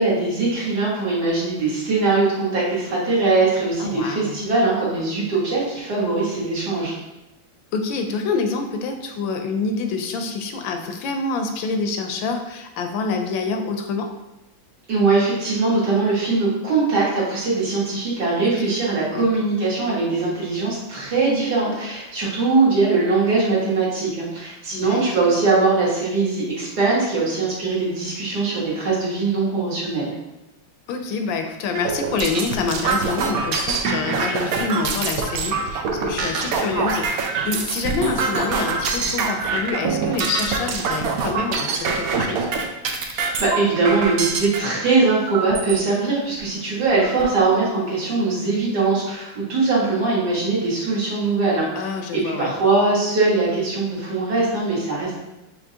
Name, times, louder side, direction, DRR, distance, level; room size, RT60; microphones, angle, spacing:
voice 1, 0.0-6.9 14.9-30.1 43.1-51.7 52.1-55.2, right 3 dB, 60° right, -6 dB, 1.9 m, -21 dB
voice 2, 3.8-4.4 7.7-14.1 18.4-18.8 19.1-19.3 24.7-25.0 30.9-42.5 51.8-52.5, left 4 dB, 80° left, 5 dB, 1.3 m, -27 dB
sound 1, 31.7-44.6 45.3-45.8 46.4-46.5 46.8-47.4, right 4 dB, 80° right, 0.8 m, -24 dB
5.9 x 3.1 x 2.8 m, 0.97 s
omnidirectional pair, 2.1 m